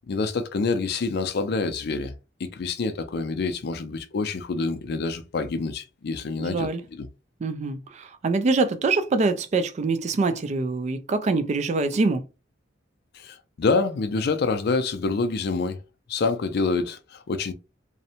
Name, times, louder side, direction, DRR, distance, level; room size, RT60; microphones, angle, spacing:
voice 1, 0.1-2.1 2.4-7.1 13.1-15.8 16.1-17.5, left 4 dB, 55° left, 0.4 m, -27 dB
voice 2, 6.4-6.8 7.4-12.2, right 3 dB, 35° right, 0.3 m, -24 dB
2.6 x 2.1 x 2.7 m
head